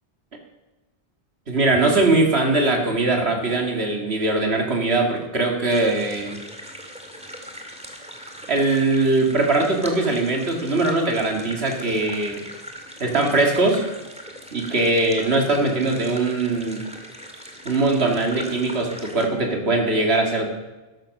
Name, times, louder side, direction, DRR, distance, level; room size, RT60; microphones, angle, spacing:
voice 1, 1.5-6.4 8.5-12.4 13.0-13.8 14.5-16.9 17.7-20.5, right 2 dB, 85° right, 2 dB, 2.4 m, -21 dB
sound 1, 5.7-19.3, equal, 5° right, 2.1 m, -40 dB
13.0 x 12.5 x 6.5 m, 1.1 s
omnidirectional pair, 1.0 m